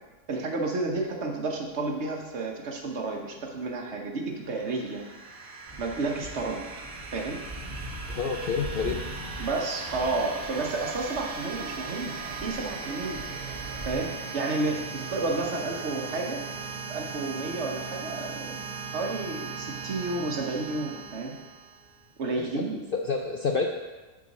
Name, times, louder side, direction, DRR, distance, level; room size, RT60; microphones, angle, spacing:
voice 1, 0.3-5.0 5.8-6.6 7.1-7.4 9.4-13.2 13.8-16.4 16.9-18.6 18.9-21.4 22.2-22.9, right 3 dB, 55° right, 1 dB, 1.3 m, -31 dB
sound 1, 4.4-22.0, right 5 dB, 85° right, 1.6 m, -38 dB
sound 2, 5.7-14.0, right 1 dB, 20° right, 1.3 m, -42 dB
voice 2, 8.1-9.0 22.3-22.5 23.1-23.7, left 5 dB, 60° left, 2 dB, 0.6 m, -28 dB
9.6 x 4.9 x 4.1 m, 1.2 s
omnidirectional pair, 1.4 m